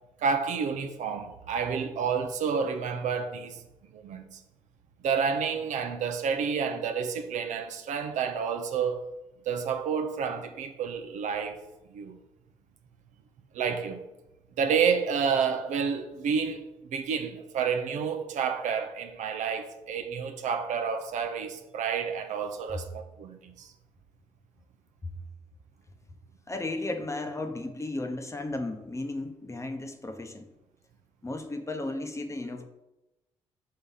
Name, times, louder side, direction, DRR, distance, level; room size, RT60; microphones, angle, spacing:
voice 1, 0.2-3.6 3.9-4.3 5.0-9.0 9.5-11.6 11.9-12.2 13.5-14.0 14.6-23.7, right 6 dB, 65° right, 0.7 m, -29 dB
voice 2, 26.5-30.5 31.2-32.6, left 2 dB, 20° left, 1.0 m, -34 dB
5.6 x 3.4 x 5.6 m
hypercardioid pair, 45°, 14 cm